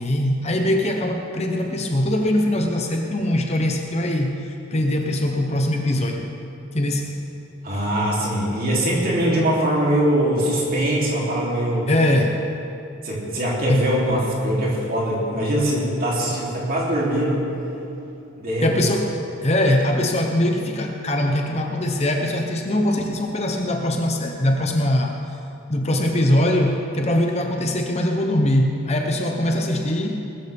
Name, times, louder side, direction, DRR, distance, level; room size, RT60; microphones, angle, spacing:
voice 1, 0.0-6.3 6.7-7.1 7.7-7.8 11.9-12.4 13.7-13.9 18.6-19.1 19.4-25.2 25.7-30.2, left 1 dB, 30° left, 3 dB, 0.9 m, -22 dB
voice 2, 7.6-11.9 13.0-17.5 18.4-18.7, right 1 dB, 45° right, -5 dB, 3.3 m, -22 dB
20.5 x 13.5 x 3.6 m, 2.8 s
head